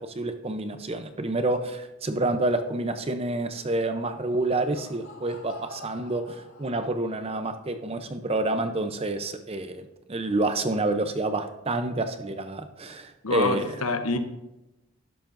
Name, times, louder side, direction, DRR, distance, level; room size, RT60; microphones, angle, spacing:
voice 1, 0.0-13.6, right 2 dB, 25° right, 8 dB, 0.6 m, -28 dB
Laughter, 4.1-7.2, left 3 dB, 55° left, 3.6 m, -48 dB
voice 2, 13.2-14.2, left 3 dB, 75° left, 8 dB, 0.9 m, -26 dB
12.0 x 11.0 x 2.6 m, 0.99 s
head